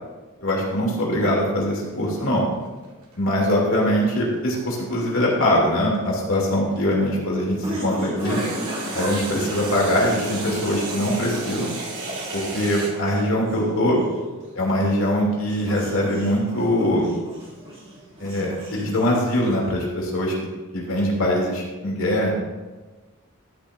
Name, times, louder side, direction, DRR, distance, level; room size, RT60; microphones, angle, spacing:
voice 1, 0.4-2.5 3.2-8.4 8.9-11.7 12.3-14.0 14.5-17.1 18.2-20.3 20.7-22.4, equal, 65° left, -3 dB, 3.0 m, -22 dB
sound 1, 1.9-7.1 8.2-12.9, right 3 dB, 90° right, 2.3 m, -34 dB
sound 2, 6.3-19.8, equal, 25° right, 3.0 m, -36 dB
12.5 x 10.5 x 2.7 m, 1.2 s
head